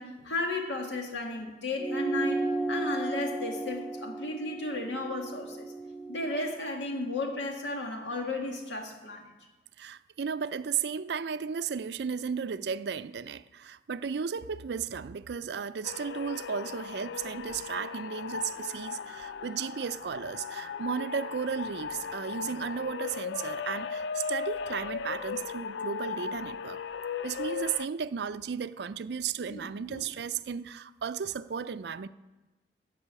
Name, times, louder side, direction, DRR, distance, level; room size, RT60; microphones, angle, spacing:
voice 1, 0.0-5.7 6.1-9.3 29.4-30.0, left 2 dB, 90° left, 2.0 m, -34 dB
sound 1, 1.8-6.6, right 2 dB, 5° left, 0.5 m, -34 dB
voice 2, 9.8-26.8 27.2-32.1, right 6 dB, 65° right, 0.4 m, -34 dB
sound 2, 15.8-27.9, left 6 dB, 75° left, 0.4 m, -37 dB
14.5 x 5.6 x 8.5 m
head